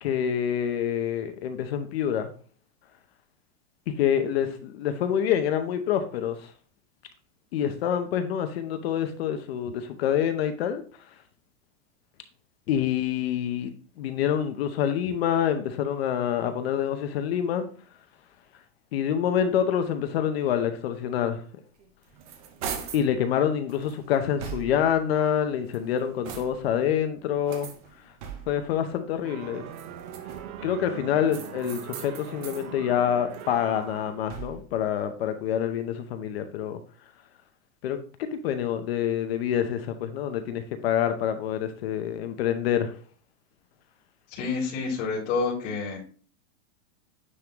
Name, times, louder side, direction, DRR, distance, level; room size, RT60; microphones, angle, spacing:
voice 1, 0.0-2.3 4.0-6.5 7.5-10.8 12.7-17.6 18.9-21.4 22.9-27.7 28.5-29.6 30.6-36.8 37.8-42.9, left 9 dB, 45° left, 0.7 m, -26 dB
sound 1, 21.8-23.1 23.7-25.0 25.6-26.8 27.4-28.7 29.6-30.6 31.3-32.7 33.1-34.8, right 7 dB, 25° right, 0.6 m, -41 dB
sound 2, 29.2-34.4, right 9 dB, 85° right, 1.0 m, -41 dB
voice 2, 44.3-46.0, left 4 dB, 30° left, 2.7 m, -28 dB
9.4 x 3.6 x 2.9 m
supercardioid pair, 175°, 42 cm